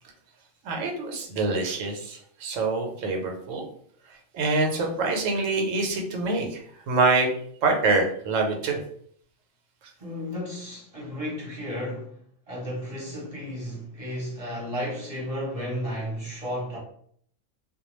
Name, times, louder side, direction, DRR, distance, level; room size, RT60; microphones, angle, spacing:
voice 1, 0.6-3.7 4.1-7.3 7.6-8.8, right 3 dB, 85° right, 1.0 m, -25 dB
voice 2, 10.0-12.2 12.5-16.8, equal, 35° right, 0.7 m, -33 dB
2.2 x 2.2 x 3.0 m
omnidirectional pair, 1.3 m